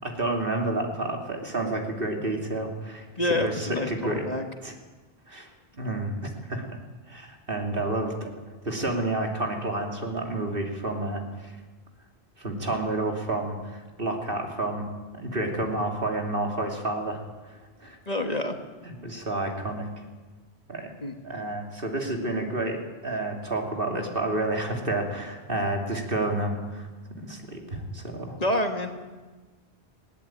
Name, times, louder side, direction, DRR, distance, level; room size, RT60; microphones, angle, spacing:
voice 1, 0.0-3.0 3.4-4.3 4.6-4.7 5.3-6.8 7.1-8.3 8.6-11.5 12.4-14.9 15.1-17.2 17.4-18.0 18.8-19.9 20.7-20.9 21.2-26.9 27.2-28.4, right 2 dB, 55° right, 2 dB, 3.1 m, -30 dB
voice 2, 3.2-4.4 18.1-18.6 21.0-21.1 28.4-28.9, left 1 dB, 40° left, 5 dB, 1.8 m, -27 dB
20.5 x 17.0 x 9.0 m, 1.3 s
omnidirectional pair, 1.1 m